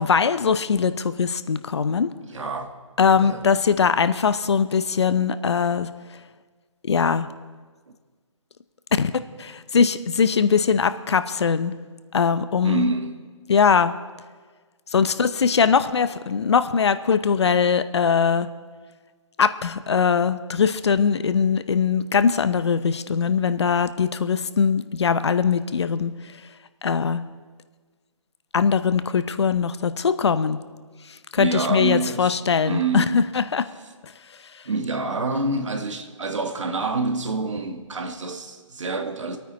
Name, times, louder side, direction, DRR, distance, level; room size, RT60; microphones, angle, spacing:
voice 1, 0.0-2.1 3.0-5.9 6.9-7.3 9.0-9.1 9.4-11.7 12.1-12.9 13.5-14.0 14.9-18.5 19.4-26.1 26.8-27.2 28.5-30.6 31.3-33.6, left 6 dB, 55° left, 0.7 m, -21 dB
voice 2, 2.2-2.8 3.1-3.5 7.9-8.0 12.6-13.2 31.4-32.4 32.7-33.2 34.6-39.4, right 3 dB, 65° right, 1.7 m, -27 dB
25.0 x 9.1 x 4.2 m
hypercardioid pair, 165°, 17 cm